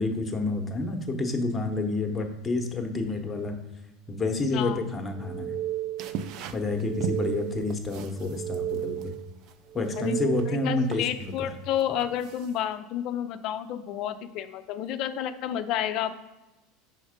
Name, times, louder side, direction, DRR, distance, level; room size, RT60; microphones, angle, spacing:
voice 1, 0.0-3.6 4.1-5.5 6.5-9.1 9.7-11.5, left 2 dB, 15° left, 4 dB, 0.9 m, -29 dB
sound 1, 5.1-6.3 6.6-7.8 8.1-9.3 9.7-10.8, right 13 dB, 20° right, 1.0 m, -34 dB
sound 2, 6.0-12.8, right 6 dB, 50° right, 0.4 m, -40 dB
voice 2, 10.0-16.1, left 10 dB, 50° left, 8 dB, 0.4 m, -31 dB
5.2 x 4.3 x 5.0 m, 1.1 s
supercardioid pair, 145°, 0 cm